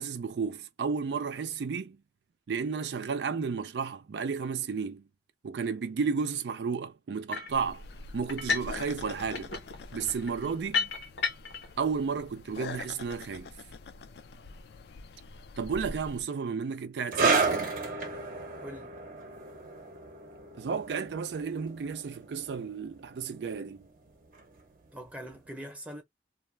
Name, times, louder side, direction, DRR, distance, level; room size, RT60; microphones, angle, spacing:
voice 1, 0.0-2.0 2.5-5.0 5.4-7.8 8.1-9.5 9.9-10.9 11.8-13.5 15.6-17.7 20.6-23.9, right 5 dB, 80° right, 0.4 m, -32 dB
sound 1, 7.3-7.6 8.3-8.8 9.1-11.7, left 5 dB, 90° left, 1.0 m, -33 dB
sound 2, 7.5-16.2, left 3 dB, 65° left, 0.4 m, -45 dB
sound 3, 17.1-24.1 24.4-24.6 25.3-25.4, right 4 dB, 50° right, 0.7 m, -32 dB
voice 2, 18.6-18.9 24.9-26.0, equal, 10° right, 0.7 m, -42 dB
2.4 x 2.1 x 3.2 m
head